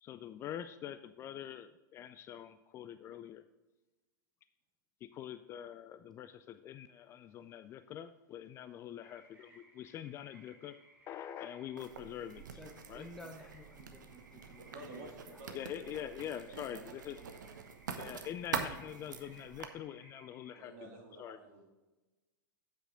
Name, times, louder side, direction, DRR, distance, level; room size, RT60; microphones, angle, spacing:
voice 1, 0.0-3.4 5.0-10.8 11.1-12.4 12.9-13.1 15.5-17.2 18.0-21.4, left 10 dB, 25° left, 12 dB, 0.4 m, -45 dB
sound 1, 9.0-20.6, right 2 dB, 10° right, 1.7 m, -63 dB
Writing, 11.8-19.7, right 6 dB, 65° right, 1.1 m, -45 dB
voice 2, 12.6-15.1, left 1 dB, 5° left, 3 dB, 0.9 m, -52 dB
voice 3, 14.6-17.4 18.2-18.3 20.6-21.6, right 3 dB, 45° right, -2 dB, 3.3 m, -52 dB
9.2 x 7.9 x 3.7 m, 1.1 s
figure-of-eight pair, 95°, 11 cm